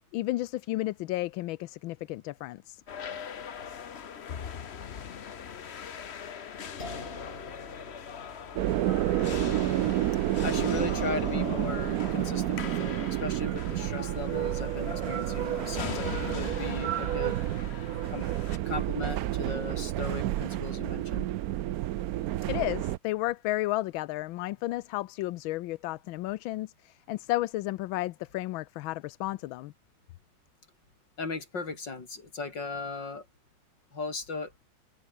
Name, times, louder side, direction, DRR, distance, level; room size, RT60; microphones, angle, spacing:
voice 1, 0.1-2.8 22.5-29.7, left 17 dB, 85° left, 1.4 m, -32 dB
sound 1, 2.9-18.6, left 7 dB, 45° left, 0.9 m, -40 dB
sound 2, 6.8-13.7, left 2 dB, 30° left, 3.6 m, -49 dB
sound 3, 8.6-23.0, right 14 dB, 70° right, 0.8 m, -30 dB
voice 2, 10.4-17.4 18.1-18.3 18.6-21.3 31.2-33.3 33.9-34.5, left 4 dB, 65° left, 4.7 m, -37 dB
omnidirectional pair, 2.1 m